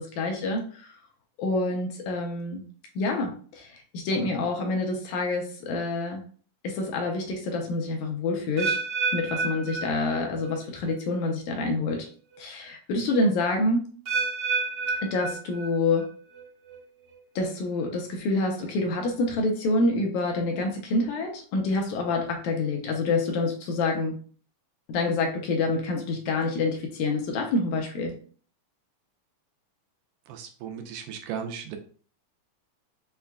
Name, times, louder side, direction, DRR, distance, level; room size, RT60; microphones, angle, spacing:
voice 1, 0.2-0.9 1.4-2.6 3.0-6.2 6.6-8.8 9.1-12.1 12.4-13.8 15.0-16.1 17.4-24.1 24.9-28.1, left 2 dB, 75° left, 2 dB, 2.0 m, -27 dB
sound 1, 8.6-10.6 10.8-11.3 11.9-12.0 14.0-16.0 16.3-16.8 17.4-17.5, right 4 dB, 70° right, 1.2 m, -30 dB
voice 2, 30.3-31.8, right 7 dB, 85° right, 5 dB, 2.2 m, -36 dB
5.9 x 2.4 x 2.2 m, 0.43 s
omnidirectional pair, 3.6 m